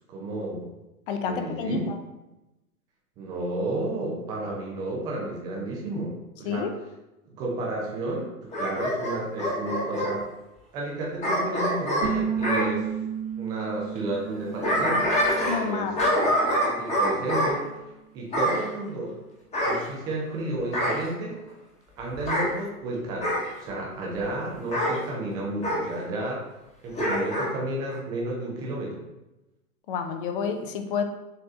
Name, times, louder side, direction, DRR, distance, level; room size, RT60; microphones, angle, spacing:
voice 1, 0.1-0.7 1.2-1.9 3.2-6.7 7.4-10.2 10.7-12.9 13.4-15.1 15.7-15.9 16.2-17.6 18.1-19.1 19.6-21.4 22.0-23.3 23.6-26.4 26.8-29.0, right 2 dB, 10° right, -2 dB, 0.4 m, -32 dB
voice 2, 1.1-2.0 6.4-6.7 15.5-15.9 29.9-31.0, left 5 dB, 35° left, 6 dB, 0.6 m, -29 dB
Bark / Growling, 8.5-10.1 11.2-12.7 14.3-15.7 16.0-17.5 18.3-18.6 19.5-20.3 20.7-21.1 22.2-22.5 23.2-23.5 24.7-25.0 25.6-25.8 26.9-27.5 27.9-28.0, equal, 15° left, 1.1 m, -25 dB
sound 1, 12.0-17.4, right 8 dB, 80° right, 0.8 m, -34 dB
6.5 x 3.2 x 2.5 m, 0.98 s
figure-of-eight pair, 115°, 46 cm